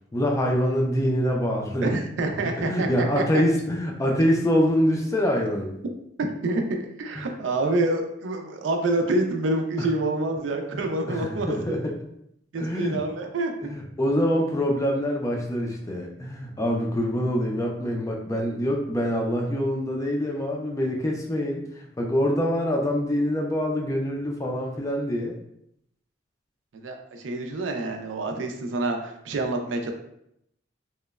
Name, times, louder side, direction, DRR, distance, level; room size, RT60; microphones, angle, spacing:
voice 1, 0.1-1.9 2.6-5.8 7.2-7.3 9.8-9.9 10.4-10.5 10.7-11.9 12.6-13.0 13.6-21.6 22.0-25.4, equal, 15° left, 0 dB, 0.3 m, -25 dB
voice 2, 1.8-3.4 6.2-6.6 7.0-11.6 12.5-13.5 26.7-29.9, right 2 dB, 85° right, 4 dB, 0.4 m, -27 dB
2.9 x 2.0 x 2.3 m, 0.76 s
head